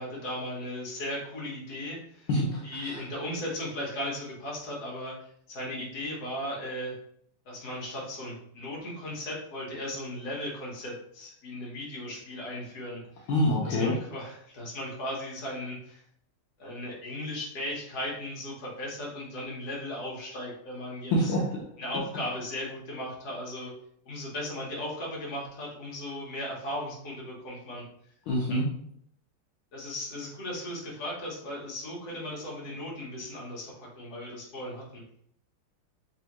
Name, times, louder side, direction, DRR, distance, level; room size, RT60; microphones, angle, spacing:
voice 1, 0.0-2.3 2.6-5.2 5.5-6.9 7.4-13.3 13.6-16.0 16.6-21.3 21.8-23.7 24.0-27.8 28.5-28.6 29.7-35.0, left 1 dB, 50° left, -4 dB, 1.6 m, -37 dB
voice 2, 2.3-3.0 13.3-13.9 21.1-21.6 28.3-28.6, left 1 dB, 75° left, -3 dB, 1.5 m, -26 dB
3.5 x 3.4 x 2.9 m, 0.68 s
omnidirectional pair, 2.4 m